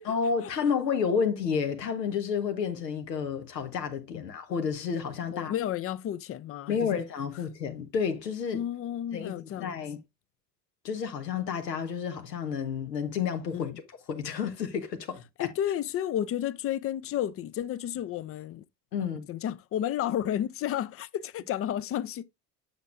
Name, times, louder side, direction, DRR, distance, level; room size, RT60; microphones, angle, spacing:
voice 1, 0.0-5.5 6.7-8.6 9.1-10.0 10.8-13.7 14.1-15.5 18.9-19.3, left 6 dB, 90° left, 1.2 m, -30 dB
voice 2, 5.3-7.0 8.5-9.8 13.5-13.8 15.4-18.6 19.3-22.2, left 11 dB, 30° left, 0.5 m, -32 dB
8.0 x 6.3 x 2.5 m
hypercardioid pair, 70°, 48 cm